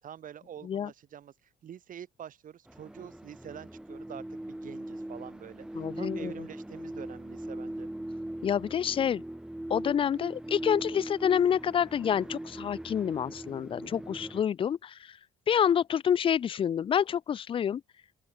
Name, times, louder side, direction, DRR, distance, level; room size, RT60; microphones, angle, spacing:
voice 1, 0.0-7.9, right 9 dB, 50° right, 7.6 m, -46 dB
sound 1, 2.7-14.4, right 1 dB, 5° right, 0.9 m, -40 dB
voice 2, 5.8-6.3 8.4-9.2 9.7-15.2 15.5-17.8, left 8 dB, 30° left, 0.4 m, -28 dB
open air
cardioid pair, 110°, 17 cm